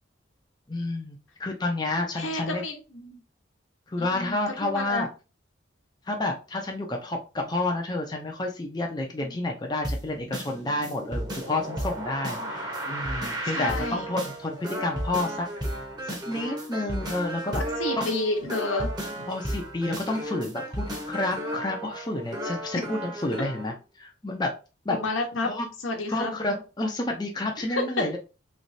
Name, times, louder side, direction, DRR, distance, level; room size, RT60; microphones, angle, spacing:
voice 1, 0.7-2.6 3.9-5.1 6.1-15.5 16.1-17.6 18.0-18.1 19.3-24.5 24.8-25.2 25.5-25.7 26.1-28.2, left 2 dB, 20° left, 1 dB, 0.5 m, -30 dB
voice 2, 2.2-3.2 4.0-5.1 9.2-9.3 12.4-12.6 13.5-14.0 17.8-19.3 24.9-25.5 25.8-26.3 27.7-27.8, left 2 dB, 90° left, 3 dB, 1.0 m, -30 dB
sound 1, 9.8-23.7, right 1 dB, 20° right, 0.9 m, -33 dB
3.2 x 3.1 x 2.6 m, 0.31 s
head